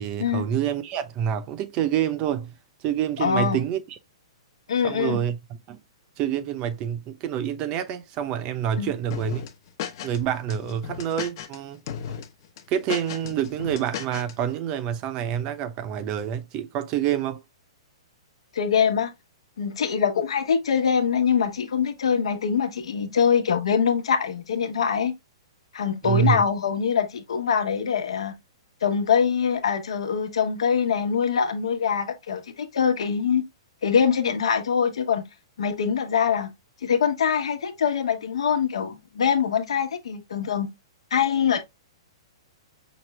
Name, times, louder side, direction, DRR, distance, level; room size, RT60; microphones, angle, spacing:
voice 1, 0.0-2.5 2.8-4.0 4.8-5.4 5.7-5.8 6.2-9.4 10.0-11.8 12.7-17.4 26.0-26.4, right 9 dB, 30° right, 0.6 m, -27 dB
voice 2, 3.2-3.6 4.7-5.2 8.8-8.9 18.5-19.1 19.6-25.1 25.7-28.3 28.8-33.4 33.8-35.3 35.6-36.5 36.8-40.7 41.1-41.6, left 7 dB, 80° left, 1.2 m, -23 dB
sound 1, 9.1-10.2 10.5-11.6 11.9-12.3 12.6-14.3, left 8 dB, 45° left, 0.9 m, -34 dB
6.0 x 2.4 x 3.2 m
hypercardioid pair, 155°, 3 cm